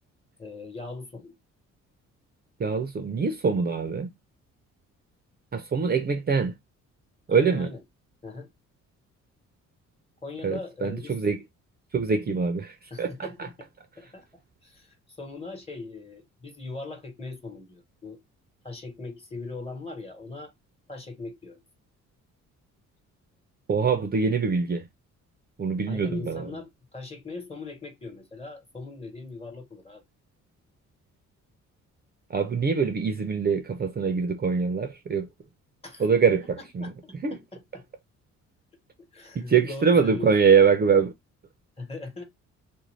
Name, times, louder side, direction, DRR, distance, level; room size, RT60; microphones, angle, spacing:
voice 1, 0.4-1.3 7.3-7.8 8.2-8.5 10.2-11.2 12.9-13.7 14.0-18.2 18.6-20.5 20.9-21.6 25.9-30.0 35.8-36.1 36.6-37.8 39.1-40.3 41.8-42.2, left 3 dB, 20° left, 1.2 m, -40 dB
voice 2, 2.6-4.1 5.5-6.5 7.3-7.7 10.4-11.4 11.9-13.5 23.7-24.8 25.6-26.5 32.3-35.3 36.0-36.9 37.2-37.4 39.3-41.1, right 5 dB, 30° right, 0.5 m, -24 dB
2.5 x 2.2 x 3.1 m
cardioid pair, 90°, 30 cm